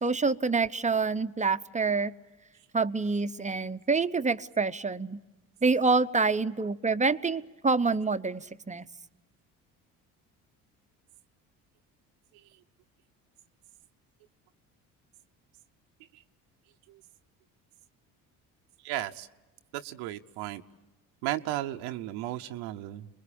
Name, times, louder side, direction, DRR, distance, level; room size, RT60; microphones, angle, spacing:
voice 1, 0.0-2.1 2.7-5.2 5.6-8.9, right 4 dB, 20° right, 12 dB, 0.8 m, -27 dB
voice 2, 18.8-19.3 19.7-20.6 21.2-23.1, right 14 dB, 80° right, 6 dB, 0.9 m, -34 dB
26.0 x 21.0 x 8.5 m, 1.1 s
supercardioid pair, 65°, 40 cm